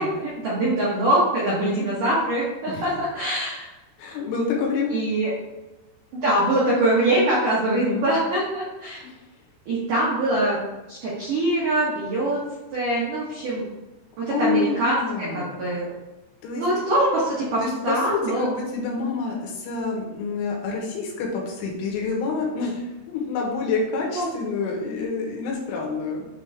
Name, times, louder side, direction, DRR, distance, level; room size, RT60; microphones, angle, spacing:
voice 1, 0.0-3.7 4.9-5.3 6.1-9.0 9.7-10.6 10.9-12.4 12.7-13.6 14.2-15.9 16.5-18.5 24.1-24.3, right 1 dB, 75° right, -7 dB, 1.9 m, -23 dB
voice 2, 1.5-1.8 2.7-3.0 4.0-5.0 7.7-8.1 9.0-9.2 14.3-15.8 16.4-16.7 17.6-26.3, left 4 dB, 75° left, -1 dB, 3.5 m, -28 dB
9.0 x 3.6 x 3.4 m, 1.1 s
omnidirectional pair, 5.8 m